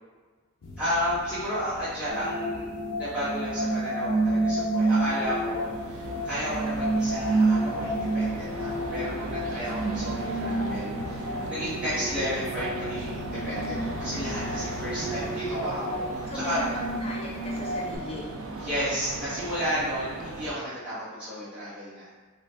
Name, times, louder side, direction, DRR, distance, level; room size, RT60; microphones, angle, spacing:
sound 1, 0.6-15.2, left 2 dB, 85° left, 0.5 m, -42 dB
voice 1, 0.8-16.0 16.3-16.6 18.6-22.1, equal, 5° right, -15 dB, 1.2 m, -32 dB
sound 2, 2.1-18.0, right 2 dB, 30° right, 0.9 m, -30 dB
sound 3, 4.7-20.5, right 3 dB, 65° right, 0.4 m, -38 dB
voice 2, 14.9-15.5 16.3-18.2, left 1 dB, 25° left, -4 dB, 0.6 m, -38 dB
2.5 x 2.4 x 3.3 m, 1.4 s
head